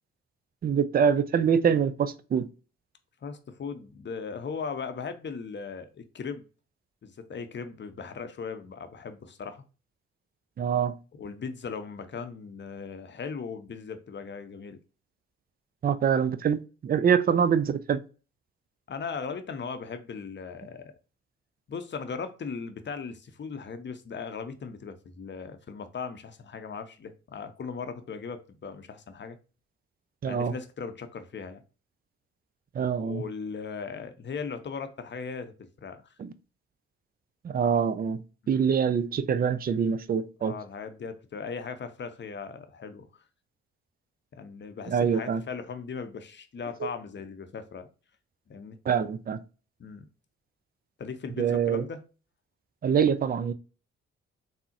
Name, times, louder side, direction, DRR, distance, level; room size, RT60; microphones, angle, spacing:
voice 1, 0.6-2.5 10.6-11.0 15.8-18.0 30.2-30.5 32.7-33.2 36.2-36.3 37.4-38.2 38.5-40.6 44.9-45.4 48.9-49.4 51.4-51.9 52.8-53.5, right 7 dB, 30° right, 0.4 m, -25 dB
voice 2, 3.2-6.4 7.0-9.6 11.1-14.8 18.9-20.9 21.7-29.4 30.3-31.6 32.9-35.5 35.8-36.0 38.4-38.6 40.4-43.1 44.3-47.9 48.5-48.8 49.8-50.0 51.0-52.0, left 5 dB, 35° left, 0.6 m, -38 dB
3.6 x 2.0 x 2.6 m
hypercardioid pair, 40°, 31 cm